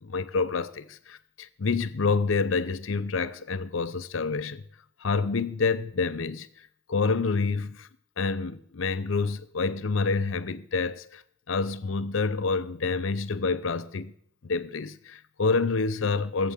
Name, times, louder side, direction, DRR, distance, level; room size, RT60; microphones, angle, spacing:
voice 1, 0.0-4.6 5.0-7.9 8.2-11.2 11.5-14.1 14.4-16.5, left 4 dB, 65° left, 0.6 m, -28 dB
17.0 x 7.6 x 7.4 m
head